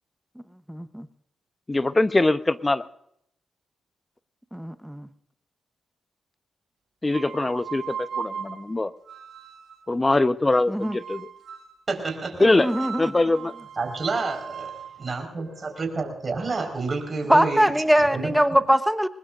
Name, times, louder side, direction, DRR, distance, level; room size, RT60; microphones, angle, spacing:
voice 1, 0.7-1.1 4.5-5.1 10.7-11.0 12.6-13.1 17.3-19.1, equal, 5° right, 11 dB, 1.0 m, -22 dB
voice 2, 1.7-2.8 7.0-8.9 9.9-11.3 12.4-12.7 13.0-13.5, left 2 dB, 25° left, 13 dB, 0.9 m, -22 dB
sound 1, 7.1-9.9 10.8-11.8 12.4-16.4, right 7 dB, 70° right, 2.4 m, -39 dB
voice 3, 11.9-12.6 13.8-18.3, right 3 dB, 40° right, 3 dB, 4.6 m, -29 dB
22.0 x 20.5 x 2.6 m, 0.71 s
supercardioid pair, 45°, 0 cm